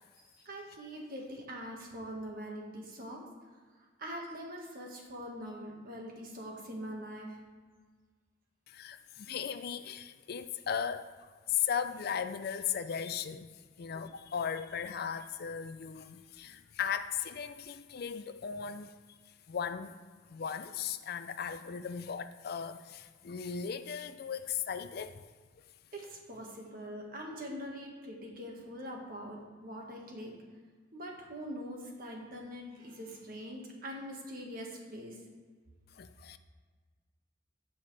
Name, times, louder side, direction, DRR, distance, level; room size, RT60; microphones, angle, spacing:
voice 1, 0.4-3.2 3.8-7.4 16.4-16.6 25.9-30.4 30.9-35.2, equal, 50° right, 1.7 m, -43 dB
voice 2, 8.7-11.1 11.5-13.5 13.8-19.2 19.5-20.0 20.3-25.2 35.9-36.4, left 7 dB, 55° left, 0.4 m, -37 dB
16.0 x 5.7 x 3.4 m
head